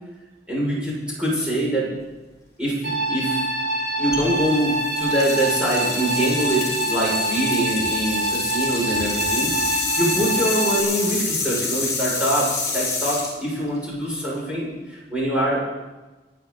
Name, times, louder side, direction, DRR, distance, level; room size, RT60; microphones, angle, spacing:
voice 1, 0.5-1.8 2.6-3.4 4.0-9.5 10.0-12.4 12.7-14.7 15.1-15.6, right 1 dB, 5° right, -7 dB, 6.9 m, -24 dB
sound 1, 2.8-10.8, right 1 dB, 65° right, 5.5 m, -25 dB
sound 2, 4.1-14.3, left 4 dB, 20° left, 4.8 m, -28 dB
28.5 x 11.0 x 4.1 m, 1.2 s
head